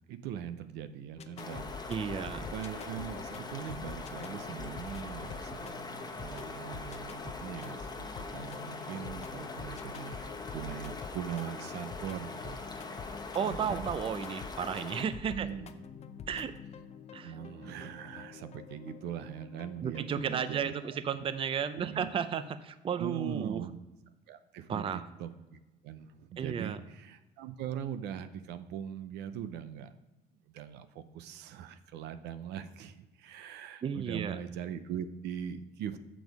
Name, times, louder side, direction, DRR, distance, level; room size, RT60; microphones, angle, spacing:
voice 1, 0.0-14.0 15.3-15.7 17.2-20.7 21.8-22.1 23.0-23.8 24.3-29.9 30.5-36.0, right 9 dB, 80° right, 11 dB, 0.6 m, -41 dB
sound 1, 1.2-20.9, left 6 dB, 40° left, 0.6 m, -46 dB
sound 2, 1.4-15.0, left 3 dB, 25° left, 1.0 m, -43 dB
voice 2, 1.9-2.4 13.3-15.5 16.3-16.6 17.1-17.3 19.8-23.6 24.7-25.0 26.4-26.8 33.8-34.4, right 7 dB, 35° right, 12 dB, 0.5 m, -33 dB
7.1 x 6.1 x 4.7 m, 1.0 s
cardioid pair, 110°, 17 cm